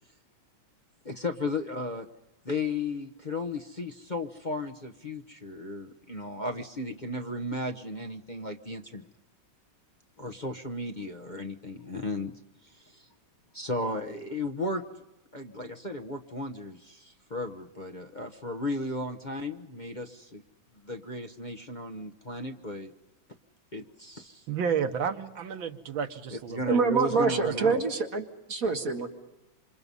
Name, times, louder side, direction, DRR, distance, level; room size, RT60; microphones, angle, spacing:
voice 1, 1.0-2.1 2.4-9.1 10.2-13.1 13.5-14.8 15.3-20.4 20.8-22.9 23.7-24.5 26.3-27.8, left 2 dB, 30° left, 1 dB, 0.9 m, -35 dB
voice 2, 24.5-26.8 27.1-27.8, right 7 dB, 90° right, 6 dB, 2.0 m, -32 dB
voice 3, 26.7-29.1, right 4 dB, 45° right, 4 dB, 2.0 m, -26 dB
28.0 x 26.5 x 5.5 m, 0.95 s
omnidirectional pair, 2.1 m